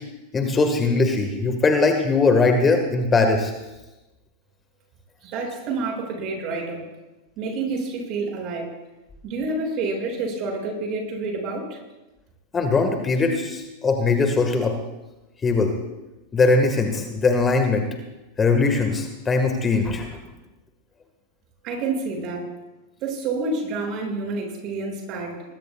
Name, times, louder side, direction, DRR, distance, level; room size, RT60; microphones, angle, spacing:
voice 1, 0.3-3.5 12.5-14.7 15.4-15.7 16.3-17.8 18.4-20.1, left 3 dB, 20° left, 5 dB, 1.7 m, -20 dB
voice 2, 5.2-6.9 7.4-8.7 9.2-11.8 21.6-22.5 23.0-25.4, right 3 dB, 40° right, 1 dB, 6.5 m, -28 dB
21.5 x 21.0 x 2.4 m, 1.0 s
figure-of-eight pair, 90°, 0 cm